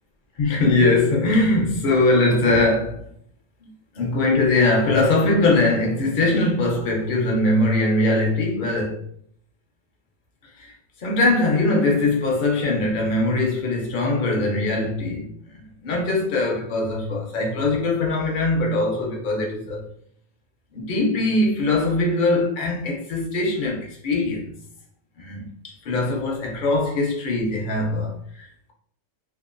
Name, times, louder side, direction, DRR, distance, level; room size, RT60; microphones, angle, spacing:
voice 1, 0.4-3.1 3.6-3.7 3.9-9.0 10.4-10.7 11.0-19.9 20.7-24.5 25.2-28.7, left 2 dB, 65° left, 0.5 m, -21 dB
2.8 x 2.2 x 2.4 m
omnidirectional pair, 1.5 m